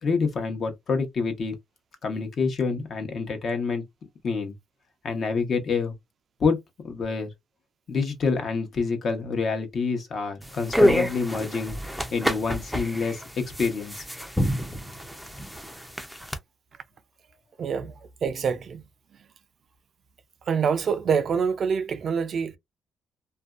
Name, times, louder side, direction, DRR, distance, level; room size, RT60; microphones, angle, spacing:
voice 1, 0.0-1.5 2.0-3.8 4.2-4.5 5.0-5.9 6.4-6.6 6.8-7.3 7.9-11.8 12.1-14.0, left 4 dB, 55° left, 0.9 m, -27 dB
sound 1, 10.4-16.4, equal, ahead, 0.5 m, -27 dB
voice 2, 17.6-17.9 18.2-18.8 20.5-22.6, right 6 dB, 55° right, 0.4 m, -25 dB
2.5 x 2.2 x 2.3 m
cardioid pair, 90°, 0 cm